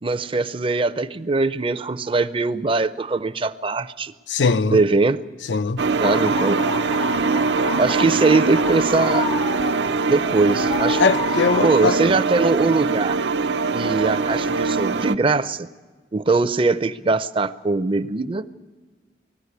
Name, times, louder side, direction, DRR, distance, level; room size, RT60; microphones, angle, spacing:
voice 1, 0.0-4.1 4.7-5.2 6.0-6.5 7.8-9.3 10.1-11.0 11.6-13.2 13.7-15.7 16.1-18.4, right 3 dB, 30° right, 0.5 m, -21 dB
voice 2, 4.3-4.8 5.5-5.8 11.0-12.0, left 4 dB, 85° left, 0.6 m, -20 dB
sound 1, 5.8-15.2, right 4 dB, 75° right, 0.6 m, -22 dB
sound 2, 6.0-12.0, left 6 dB, 35° left, 0.6 m, -30 dB
20.0 x 14.5 x 9.6 m
head